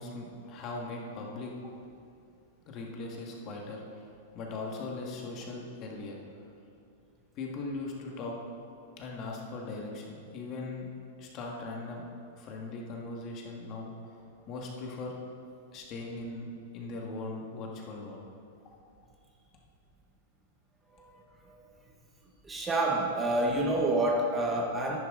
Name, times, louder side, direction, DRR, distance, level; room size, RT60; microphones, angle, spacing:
voice 1, 0.0-1.5 2.7-3.8 4.3-6.2 7.4-8.4 9.0-10.9 11.2-12.1 12.3-14.2 14.5-15.2 15.7-16.5 16.7-18.2, left 3 dB, 35° left, -1 dB, 1.8 m, -39 dB
voice 2, 22.4-25.0, right 1 dB, 15° right, 0 dB, 1.0 m, -27 dB
10.5 x 9.9 x 3.9 m, 2.5 s
hypercardioid pair, 140°, 0 cm